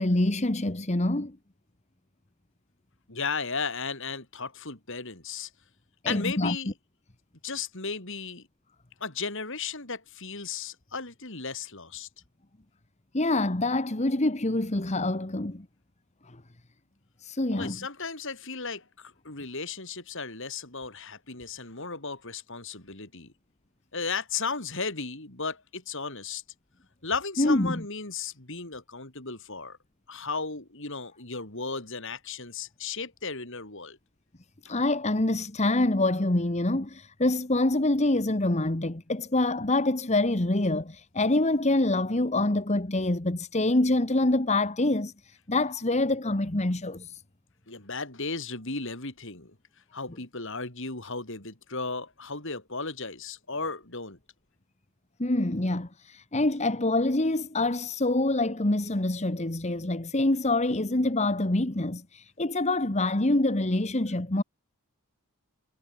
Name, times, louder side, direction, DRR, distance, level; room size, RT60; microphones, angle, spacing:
voice 1, 0.0-1.4 6.0-6.6 13.1-15.7 16.3-16.4 17.2-17.8 27.4-27.8 34.6-47.2 55.2-64.4, left 2 dB, 30° left, 1.3 m, -26 dB
voice 2, 3.1-5.5 6.1-6.7 7.4-8.5 9.0-12.1 17.5-23.3 23.9-26.4 27.0-29.8 30.1-34.0 47.7-49.5 49.9-54.2, left 4 dB, 55° left, 4.7 m, -35 dB
head